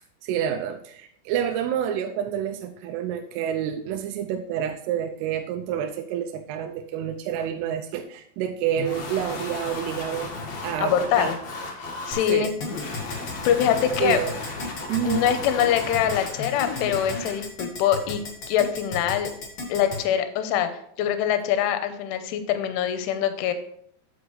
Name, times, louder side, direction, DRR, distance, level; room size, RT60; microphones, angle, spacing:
voice 1, 0.2-10.3 10.6-11.3 12.3-12.5 14.0-14.4 14.9-15.2, right 9 dB, 85° right, 4 dB, 3.1 m, -28 dB
sound 1, 8.7-17.4, left 3 dB, 65° left, 1.8 m, -35 dB
voice 2, 10.8-11.4 12.1-12.5 13.4-14.2 15.0-18.2 18.5-19.3 19.7-20.7 21.0-23.5, left 10 dB, 85° left, 8 dB, 3.1 m, -23 dB
Keyboard (musical), 12.1-20.0, left 2 dB, 40° left, 2.0 m, -34 dB
8.5 x 7.9 x 3.1 m, 0.67 s
omnidirectional pair, 5.8 m